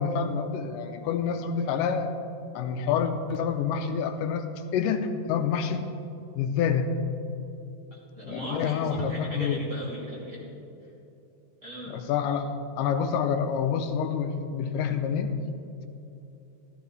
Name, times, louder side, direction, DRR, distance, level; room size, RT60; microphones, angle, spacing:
voice 1, 0.0-2.1 2.6-4.4 4.7-5.9 6.4-6.9 8.2-9.6 11.9-12.5 12.8-15.3, left 7 dB, 85° left, 7 dB, 2.2 m, -27 dB
voice 2, 7.9-10.4 11.6-12.0, equal, 25° right, -7 dB, 2.4 m, -38 dB
14.5 x 13.5 x 3.2 m, 2.8 s
omnidirectional pair, 3.9 m